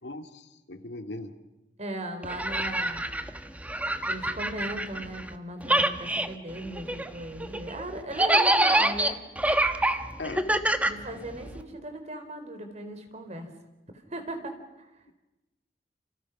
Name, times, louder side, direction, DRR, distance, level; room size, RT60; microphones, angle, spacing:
voice 1, 0.0-1.3 10.2-10.4, left 2 dB, 80° left, 6 dB, 2.2 m, -38 dB
voice 2, 1.8-3.2 4.0-9.2 10.4-10.5 10.9-13.5 13.9-14.6, right 1 dB, 40° right, 7 dB, 4.1 m, -37 dB
sound 1, 2.2-5.3 5.6-11.6, right 1 dB, 10° right, 1.3 m, -26 dB
30.0 x 29.5 x 6.1 m, 1.0 s
head